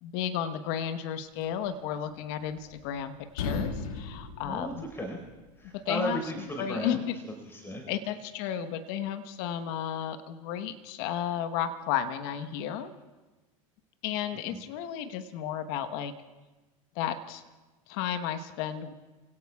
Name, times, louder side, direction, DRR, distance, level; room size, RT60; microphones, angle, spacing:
voice 1, 0.0-4.8 5.7-6.2 6.6-7.2 7.9-12.9 14.0-16.1 16.9-17.4 17.9-18.9, left 9 dB, 60° left, 10 dB, 1.2 m, -33 dB
sound 1, 2.1-3.0 3.3-5.4, left 4 dB, 80° left, 2.0 m, -36 dB
voice 2, 4.4-5.2 5.6-7.0 7.4-7.8 14.3-14.6, equal, 15° left, 2 dB, 4.7 m, -35 dB
29.5 x 17.5 x 2.4 m, 1.2 s
hypercardioid pair, 90°, 18 cm